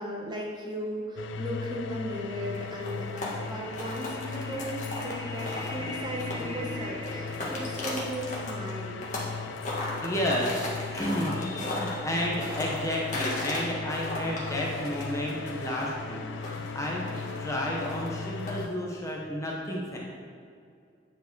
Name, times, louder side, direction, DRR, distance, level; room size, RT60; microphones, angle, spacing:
voice 1, 0.0-9.0, equal, 25° right, -2 dB, 1.0 m, -36 dB
sound 1, 1.2-18.7, left 5 dB, 70° left, 0.4 m, -38 dB
sound 2, 2.5-6.6 7.0-9.3 9.6-13.6 13.9-18.7, left 2 dB, 40° left, 1.5 m, -36 dB
voice 2, 3.2-7.8 10.0-16.2 16.5-17.0 17.4-20.0, equal, 15° left, -3 dB, 0.8 m, -33 dB
sound 3, 13.9-18.0, equal, 75° right, 1.4 m, -51 dB
9.5 x 4.6 x 4.6 m, 2.3 s
head